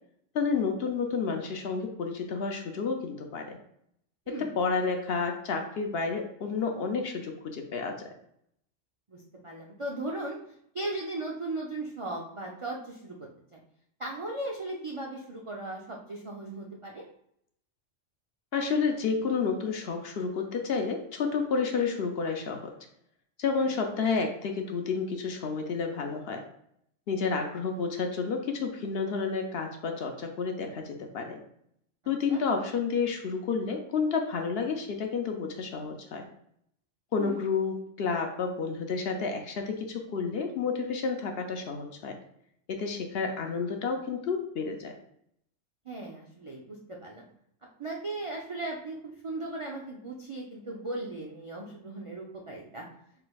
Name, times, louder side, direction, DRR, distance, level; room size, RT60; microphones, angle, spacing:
voice 1, 0.3-3.6 4.4-8.1 18.5-22.7 23.4-26.4 27.1-31.4 32.1-36.2 37.1-42.2 42.7-44.9, left 5 dB, 60° left, 4 dB, 0.7 m, -30 dB
voice 2, 9.1-10.4 10.7-13.6 14.0-17.0 23.5-23.7 32.3-32.4 37.2-37.4 45.8-47.3 47.8-52.9, right 2 dB, 50° right, -2 dB, 0.3 m, -37 dB
6.0 x 3.3 x 2.3 m, 0.71 s
omnidirectional pair, 1.3 m